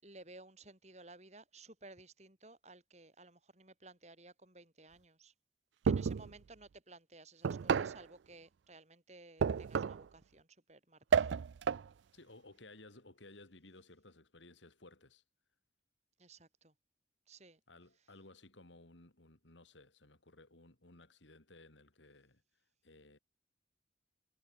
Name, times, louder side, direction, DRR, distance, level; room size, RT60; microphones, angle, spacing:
voice 1, 0.0-5.3 5.8-11.4 16.2-16.7 17.3-17.6, right 2 dB, 35° right, 6.1 m, -57 dB
sound 1, 5.9-6.3 7.4-8.0 9.4-10.1 11.1-11.9, right 6 dB, 75° right, 0.4 m, -31 dB
voice 2, 12.1-15.2 17.7-22.4 22.8-23.2, left 2 dB, 80° left, 3.1 m, -58 dB
head